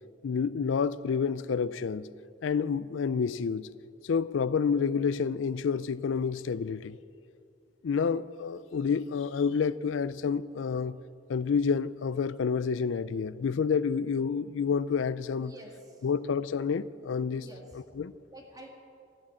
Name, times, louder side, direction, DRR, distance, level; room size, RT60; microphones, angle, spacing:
voice 1, 0.2-2.1 2.4-3.7 4.0-7.0 7.8-11.0 11.3-15.5 16.0-17.4 18.0-18.1, left 6 dB, 80° left, 0.4 m, -29 dB
voice 2, 15.4-16.1 17.4-17.8 18.3-18.7, right 1 dB, 20° right, 1.9 m, -49 dB
13.5 x 12.0 x 8.7 m
head